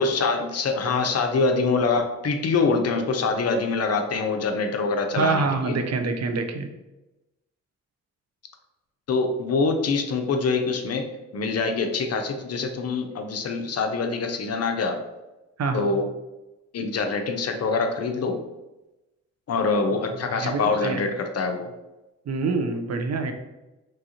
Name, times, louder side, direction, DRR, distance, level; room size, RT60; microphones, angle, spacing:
voice 1, 0.0-5.8 9.1-15.0 15.7-16.1 16.7-18.4 19.5-21.7, left 4 dB, 45° left, 5 dB, 0.5 m, -25 dB
voice 2, 5.2-6.7 15.6-15.9 20.3-21.0 22.3-23.3, right 4 dB, 50° right, 6 dB, 0.5 m, -26 dB
3.0 x 2.4 x 2.8 m, 1.0 s
hypercardioid pair, 40°, 35 cm